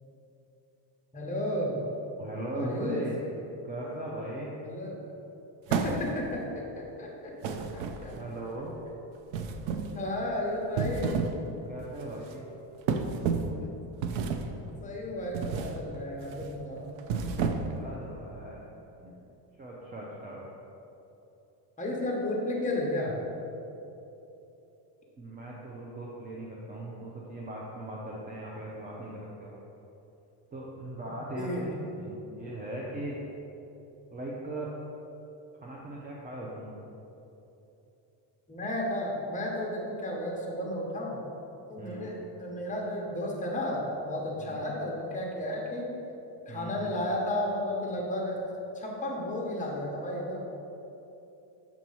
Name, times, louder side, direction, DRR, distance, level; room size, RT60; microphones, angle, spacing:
voice 1, 1.1-1.8 2.5-3.0 4.6-5.0 5.7-6.6 7.0-8.1 8.9-9.0 9.9-11.3 13.6-13.7 14.8-16.8 21.8-23.1 31.3-31.7 38.5-41.2 41.7-45.9 46.5-48.4 48.7-50.4, left 1 dB, 15° left, -2 dB, 0.9 m, -33 dB
voice 2, 2.2-3.1 3.6-4.5 8.1-8.8 11.7-12.4 17.7-19.3 19.6-20.4 25.2-29.6 30.5-31.7 32.0-33.2 34.1-34.7 35.6-36.8 41.8-42.1 44.4-44.6 46.5-46.9, right 1 dB, 20° right, -4 dB, 0.5 m, -39 dB
sound 1, 5.7-6.4 7.4-8.3 9.3-10.0 10.6-11.4 11.8-12.0 12.9-13.6 14.0-14.6 15.3-15.8 16.2-16.5 17.0-17.9, right 5 dB, 75° right, 0.6 m, -31 dB
7.2 x 3.0 x 5.4 m, 3.0 s
cardioid pair, 135°, 48 cm